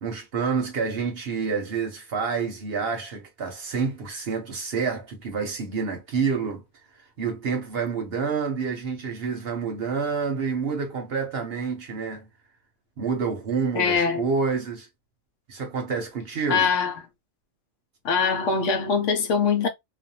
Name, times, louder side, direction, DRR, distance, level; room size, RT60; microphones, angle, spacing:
voice 1, 0.0-6.6 7.2-12.3 13.0-14.9 15.5-16.7, right 5 dB, 55° right, 0.8 m, -28 dB
voice 2, 13.7-14.2 16.5-16.9 18.0-19.7, left 5 dB, 70° left, 1.0 m, -22 dB
2.5 x 2.3 x 2.7 m
omnidirectional pair, 1.4 m